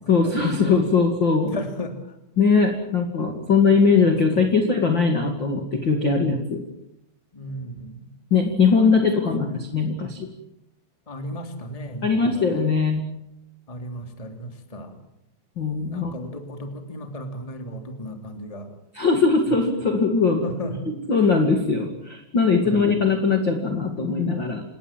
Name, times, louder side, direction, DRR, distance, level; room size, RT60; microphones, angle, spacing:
voice 1, 0.1-1.5 2.4-6.6 8.3-10.3 12.0-13.1 15.5-16.1 18.9-20.4 21.1-24.6, left 4 dB, 50° left, 4 dB, 1.4 m, -20 dB
voice 2, 1.5-2.1 4.0-4.5 7.3-8.1 8.7-8.9 11.1-12.7 13.7-15.0 15.9-18.7 19.5-19.6 20.4-20.8 22.6-23.0, equal, 10° left, 5 dB, 1.6 m, -35 dB
27.5 x 19.5 x 7.4 m, 0.84 s
omnidirectional pair, 6.0 m